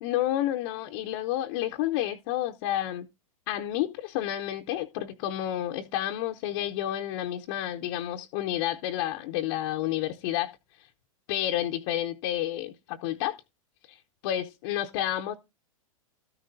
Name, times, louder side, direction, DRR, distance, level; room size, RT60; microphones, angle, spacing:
voice 1, 0.0-3.1 3.5-10.5 11.3-13.3 13.9-14.0 14.2-15.4, left 12 dB, 50° left, 0.8 m, -30 dB
13.0 x 9.9 x 2.7 m
hypercardioid pair, 100°, 18 cm